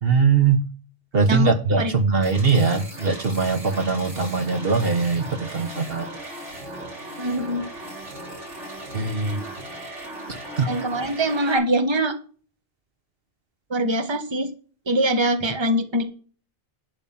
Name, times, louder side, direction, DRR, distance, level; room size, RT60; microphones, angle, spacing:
voice 1, 0.0-0.6 1.1-6.1 8.9-9.5 10.6-10.7, right 4 dB, 55° right, 1.4 m, -21 dB
sound 1, 2.2-11.6, right 1 dB, 80° right, 3.9 m, -38 dB
voice 2, 7.2-7.6 10.7-12.2 13.7-14.5 14.9-16.0, right 1 dB, 25° right, 1.3 m, -23 dB
11.5 x 5.7 x 5.9 m
omnidirectional pair, 1.2 m